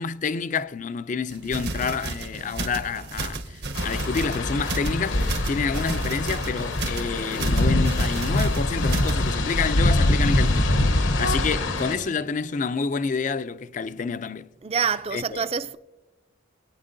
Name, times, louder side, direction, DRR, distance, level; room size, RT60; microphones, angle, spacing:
voice 1, 0.0-10.8 11.2-14.5 15.1-15.5, left 5 dB, 40° left, 0.4 m, -28 dB
sound 1, 1.3-9.3, right 2 dB, 55° right, 0.8 m, -33 dB
sound 2, 3.7-11.9, left 1 dB, 70° left, 0.9 m, -24 dB
voice 2, 11.4-12.1 14.6-15.8, right 6 dB, 30° right, 0.4 m, -28 dB
21.5 x 9.6 x 2.6 m
head